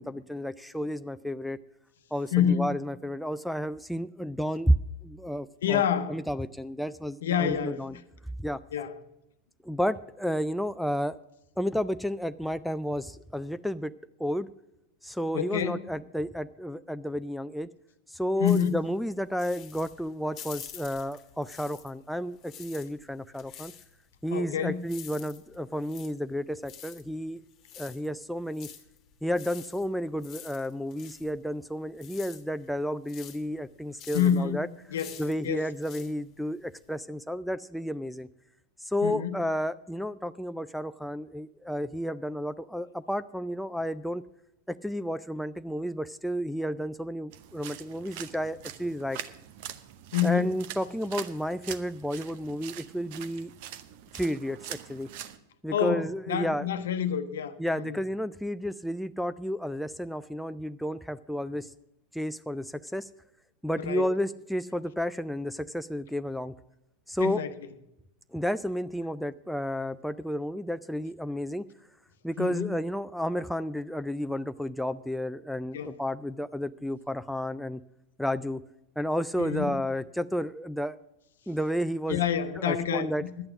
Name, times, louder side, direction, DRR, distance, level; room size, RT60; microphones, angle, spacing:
voice 1, 0.0-1.6 2.1-5.8 6.1-7.9 8.4-8.6 9.6-11.2 11.6-13.9 14.2-14.5 15.0-17.7 18.1-23.7 24.2-27.4 27.8-28.7 29.2-34.7 35.2-38.3 38.8-44.2 44.7-49.2 50.2-53.5 54.1-55.1 55.6-56.7 57.6-61.7 62.1-63.1 63.6-66.5 67.1-67.4 68.3-71.7 72.2-77.8 78.2-78.6 79.0-81.0 81.5-82.2 82.6-83.2, equal, ahead, 0.3 m, -31 dB
voice 2, 2.3-2.7 5.6-6.2 7.2-7.9 8.7-9.0 15.3-15.8 18.4-18.8 24.3-24.9 34.1-34.6 34.9-35.7 39.0-39.3 50.1-50.6 55.7-58.0 63.8-64.1 67.2-67.5 72.4-72.7 75.7-75.9 79.4-79.8 82.1-83.5, left 8 dB, 60° left, 0.9 m, -28 dB
sound 1, 18.5-22.1 22.3-37.0, left 9 dB, 35° left, 1.3 m, -48 dB
sound 2, 47.3-55.4, right 11 dB, 50° right, 0.7 m, -43 dB
11.5 x 8.7 x 6.1 m
figure-of-eight pair, 90°, 0 cm